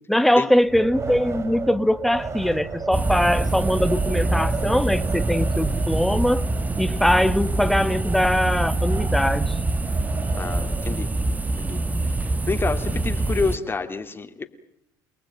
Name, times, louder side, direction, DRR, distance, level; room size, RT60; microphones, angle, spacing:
voice 1, 0.0-6.5 6.8-9.5, left 1 dB, ahead, 12 dB, 1.2 m, -21 dB
Wind, 0.6-11.0, right 4 dB, 30° right, 6.0 m, -34 dB
sound 1, 2.9-13.6, right 2 dB, 15° right, 1.2 m, -25 dB
voice 2, 10.4-11.1 11.6-11.8 12.1-12.2 12.5-14.4, left 4 dB, 25° left, 5 dB, 2.4 m, -28 dB
29.0 x 19.0 x 8.9 m, 0.74 s
supercardioid pair, 80°, 9 cm